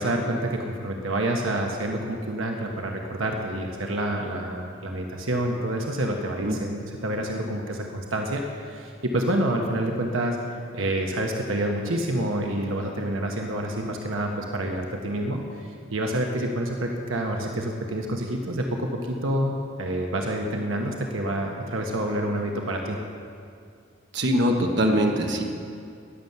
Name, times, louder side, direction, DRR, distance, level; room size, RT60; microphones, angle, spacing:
voice 1, 0.0-10.4 10.7-23.0, right 1 dB, 80° right, 1 dB, 1.2 m, -28 dB
voice 2, 24.1-25.4, equal, 60° right, 2 dB, 1.4 m, -22 dB
19.0 x 7.3 x 6.8 m, 2.4 s
head